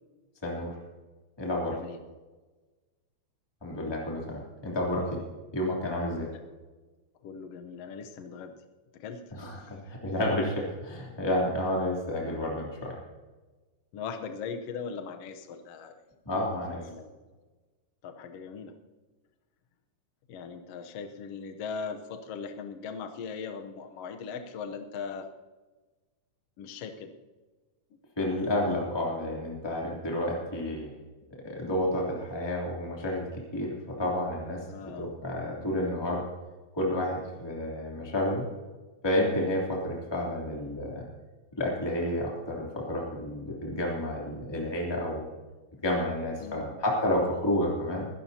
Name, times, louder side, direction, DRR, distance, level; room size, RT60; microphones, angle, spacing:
voice 1, 0.4-0.8 1.4-1.8 3.6-5.2 5.5-6.3 9.3-13.0 16.2-16.8 28.2-30.9 31.4-34.6 34.9-36.3 36.7-38.5 39.0-41.0 41.6-45.3 45.8-48.1, left 1 dB, 10° left, -3 dB, 2.8 m, -30 dB
voice 2, 1.7-2.0 6.3-6.4 7.2-8.6 8.9-9.8 13.9-15.9 16.7-17.2 18.0-18.8 20.3-25.3 26.6-27.1 34.7-35.1 39.3-39.6 46.4-46.8, left 5 dB, 65° left, 5 dB, 1.8 m, -39 dB
21.5 x 17.5 x 2.8 m, 1.3 s
omnidirectional pair, 3.4 m